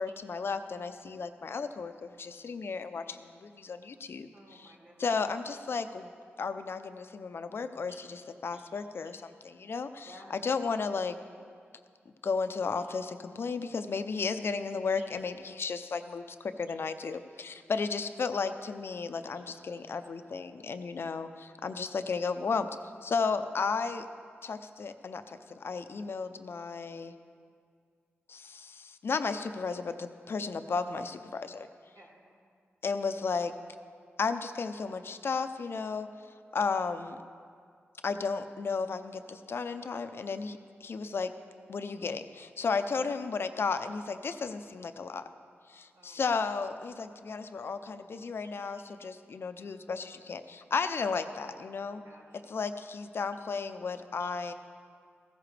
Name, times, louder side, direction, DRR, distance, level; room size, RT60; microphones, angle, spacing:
voice 1, 0.0-4.3 4.6-4.7 5.0-6.1 6.4-10.1 10.4-11.2 12.2-22.7 23.0-24.1 24.4-27.1 28.3-31.7 32.8-33.5 34.2-36.1 36.5-37.2 38.0-41.3 41.7-45.2 45.7-52.0 52.5-54.5, left 4 dB, 60° left, 10 dB, 0.6 m, -34 dB
voice 2, 4.3-5.1 7.9-8.0 8.5-8.6 10.0-10.4 15.0-15.1 16.7-16.8 31.9-32.2 45.9-46.3 52.0-52.4 54.2-54.3, right 1 dB, 85° right, -4 dB, 2.8 m, -55 dB
15.0 x 13.5 x 3.4 m, 2.2 s
wide cardioid pair, 90°, 4 cm